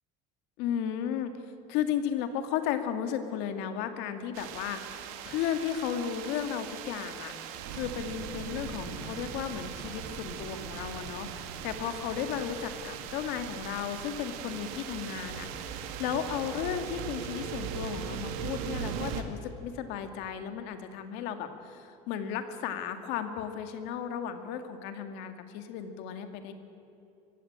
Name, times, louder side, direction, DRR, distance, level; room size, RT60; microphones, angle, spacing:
voice 1, 0.6-1.3 1.7-26.5, left 9 dB, 65° left, 7 dB, 2.1 m, -34 dB
sound 1, 4.3-19.2, right 8 dB, 80° right, 2.0 m, -39 dB
24.0 x 15.5 x 8.9 m, 2.8 s
cardioid pair, 155°, 19 cm